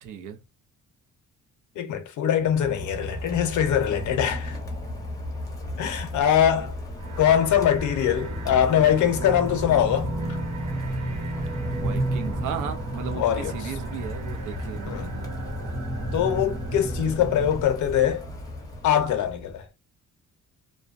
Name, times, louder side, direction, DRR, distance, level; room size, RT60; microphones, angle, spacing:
voice 1, 0.0-0.4 3.9-4.0 6.0-6.1 6.5-6.7 11.7-15.4, right 7 dB, 80° right, 0.6 m, -36 dB
voice 2, 1.8-4.6 5.8-6.7 7.2-10.1 13.1-13.6 14.9-15.1 16.1-18.2 18.8-19.7, left 9 dB, 75° left, 0.6 m, -22 dB
Rain, 2.4-19.6, left 1 dB, 10° left, 0.6 m, -36 dB
sound 1, 7.0-17.8, right 1 dB, 65° right, 1.0 m, -32 dB
2.6 x 2.1 x 2.4 m
cardioid pair, 175°, 30 cm